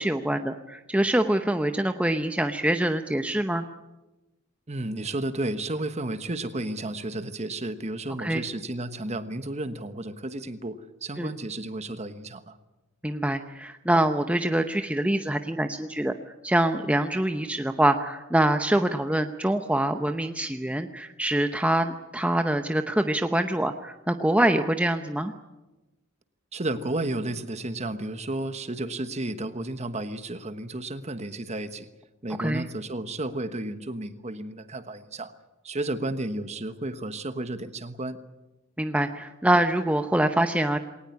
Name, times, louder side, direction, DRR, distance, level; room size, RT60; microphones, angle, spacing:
voice 1, 0.0-3.6 8.2-8.4 11.2-11.3 13.0-16.1 16.4-25.3 32.4-32.7 38.8-40.8, right 1 dB, 5° right, 7 dB, 0.8 m, -25 dB
voice 2, 4.7-12.6 26.5-31.9 32.2-35.3 35.6-38.2, right 2 dB, 30° right, 11 dB, 1.3 m, -32 dB
21.5 x 19.0 x 9.8 m, 1.1 s
head